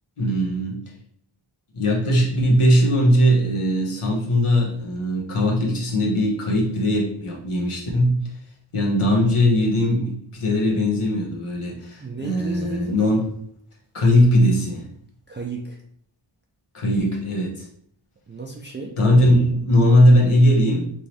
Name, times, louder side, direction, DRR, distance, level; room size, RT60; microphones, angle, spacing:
voice 1, 0.2-0.8 1.7-8.3 8.7-13.2 13.9-14.9 16.7-17.7 19.0-20.9, equal, 80° left, -2 dB, 1.1 m, -19 dB
voice 2, 12.0-13.0 15.3-15.8 18.3-19.0, right 3 dB, 25° right, -1 dB, 0.4 m, -33 dB
3.6 x 3.1 x 2.7 m, 0.64 s
wide cardioid pair, 50°, 50 cm